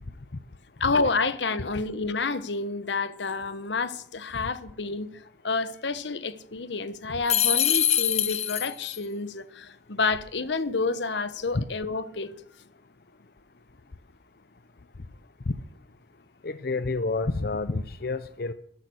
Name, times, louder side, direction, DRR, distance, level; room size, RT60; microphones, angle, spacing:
voice 1, 0.8-5.1 5.4-12.3, left 4 dB, 80° left, 1.1 m, -29 dB
sound 1, 7.3-9.0, left 10 dB, 40° left, 1.0 m, -24 dB
voice 2, 16.4-18.5, left 3 dB, 60° left, 0.7 m, -29 dB
12.5 x 12.5 x 6.4 m
head